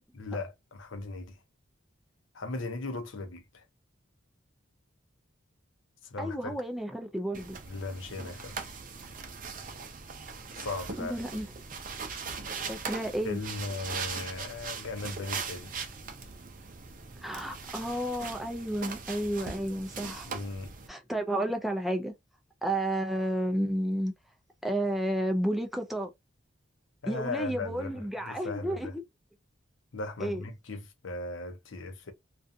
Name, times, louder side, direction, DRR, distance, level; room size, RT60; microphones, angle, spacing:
voice 1, 0.1-1.4 2.3-3.6 6.0-6.5 7.7-8.8 10.6-11.2 13.2-15.7 20.3-20.7 27.0-28.9 29.9-32.1, left 3 dB, 75° left, 0.7 m, -38 dB
voice 2, 6.2-7.6 11.0-11.5 12.7-13.4 17.2-20.3 20.9-22.1 22.6-24.1 24.6-26.1 27.1-29.0 30.2-30.4, right 1 dB, ahead, 0.4 m, -31 dB
sound 1, 7.3-20.9, right 5 dB, 45° right, 0.6 m, -40 dB
2.5 x 2.3 x 2.6 m
head